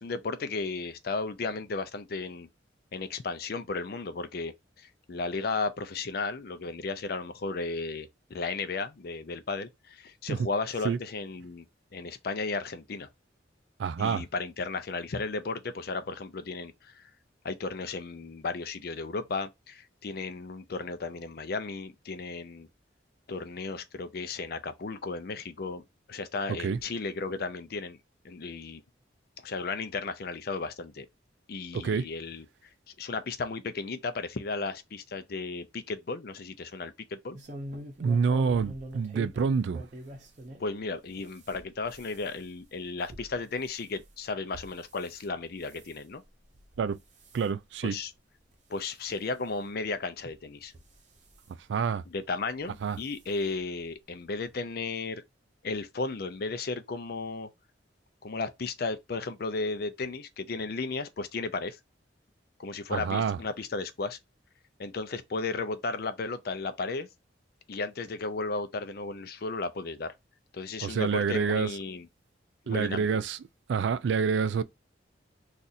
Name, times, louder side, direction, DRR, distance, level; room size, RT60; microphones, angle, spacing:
voice 1, 0.0-2.5 2.9-11.7 11.9-13.1 14.0-17.0 17.4-22.7 23.3-25.8 26.1-28.0 28.2-28.8 29.4-31.1 31.5-32.5 32.9-37.4 40.6-46.2 47.8-48.1 48.7-50.7 52.1-55.2 55.6-57.5 58.2-61.8 62.6-64.2 64.8-67.1 67.7-70.1 70.5-72.1 72.7-73.1, left 3 dB, 55° left, 0.5 m, -34 dB
voice 2, 13.8-14.2 26.6-26.8 31.7-32.0 38.0-39.8 46.8-47.0 47.3-48.0 51.7-52.0 52.8-53.0 62.9-63.4 70.8-71.7 72.7-73.4 73.7-74.6, right 5 dB, 70° right, 0.3 m, -27 dB
sound 1, 37.3-40.7 41.1-45.3 45.6-46.0 46.5-46.9 47.2-47.5 48.1-48.2 48.5-48.6 49.8-49.9 50.6-51.4 52.6-52.8 53.1-53.2 53.6-53.7, right 1 dB, 40° right, 0.7 m, -45 dB
2.6 x 2.5 x 4.0 m
head